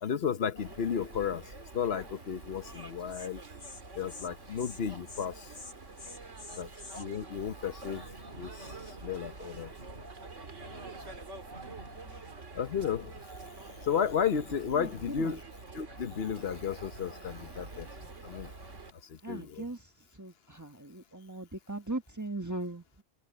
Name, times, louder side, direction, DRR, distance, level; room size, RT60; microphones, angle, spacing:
voice 1, 0.0-3.4 4.0-5.5 6.6-6.7 7.0-8.0 8.4-8.7 9.0-9.7 12.5-13.1 13.8-15.4 15.7-18.5 19.1-19.6, left 7 dB, 55° left, 1.2 m, -33 dB
sound 1, 0.6-18.9, right 3 dB, 75° right, 2.6 m, -47 dB
Insect, 2.7-2.8 3.1-3.3 3.6-3.8 4.1-4.3 4.6-4.8 5.1-5.3 5.5-7.1, left 3 dB, 80° left, 2.7 m, -47 dB
sound 2, 7.8-12.9, right 1 dB, 55° right, 7.3 m, -53 dB
voice 2, 10.8-11.2 14.7-14.9 15.2-15.4 19.2-19.9 20.1-23.0, right 2 dB, 15° right, 1.4 m, -39 dB
open air
omnidirectional pair, 1.2 m